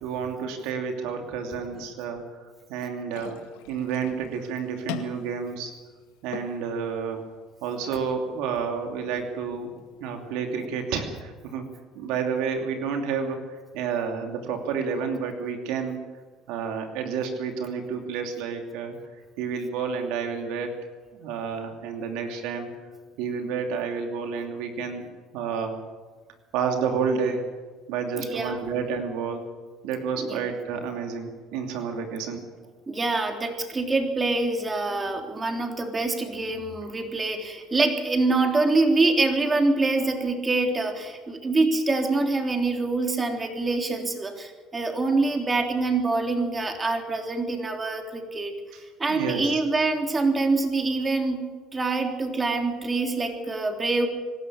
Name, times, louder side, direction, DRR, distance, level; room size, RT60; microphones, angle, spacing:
voice 1, 0.0-2.2 2.7-3.4 3.7-5.7 6.2-7.2 7.6-11.7 11.9-16.0 16.5-19.0 19.4-20.7 21.1-22.7 23.2-25.1 25.3-25.8 26.5-27.5 27.9-29.4 29.8-32.4 48.7-48.8 49.1-49.6, right 6 dB, 75° right, 4 dB, 2.8 m, -30 dB
sound 1, 3.1-11.1, left 12 dB, 85° left, 2.1 m, -44 dB
voice 2, 28.2-28.6 30.2-30.4 32.9-48.5 49.0-51.4 51.7-54.1, right 3 dB, 25° right, 4 dB, 3.5 m, -25 dB
25.0 x 13.0 x 8.7 m, 1.4 s
supercardioid pair, 95°, 0 cm